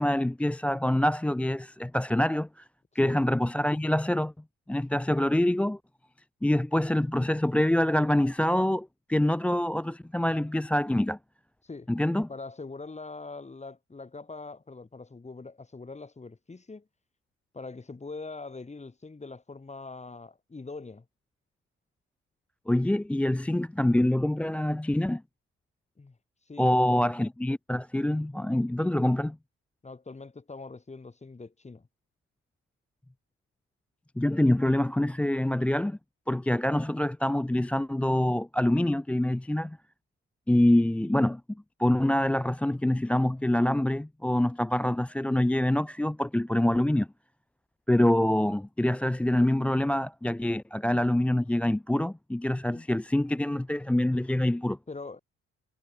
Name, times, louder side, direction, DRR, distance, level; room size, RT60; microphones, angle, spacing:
voice 1, 0.0-2.6 3.0-4.3 4.7-5.8 6.4-11.2 11.9-12.3 22.7-25.2 26.6-29.4 34.2-36.0 36.3-39.8 40.5-41.4 41.8-47.1 47.9-54.8, left 1 dB, 5° left, 0.4 m, -25 dB
voice 2, 12.3-16.9 17.5-21.1 26.0-26.2 26.5-27.1 29.8-31.9 52.5-52.9 54.9-55.2, left 3 dB, 20° left, 3.8 m, -42 dB
cardioid pair, 90°, 30 cm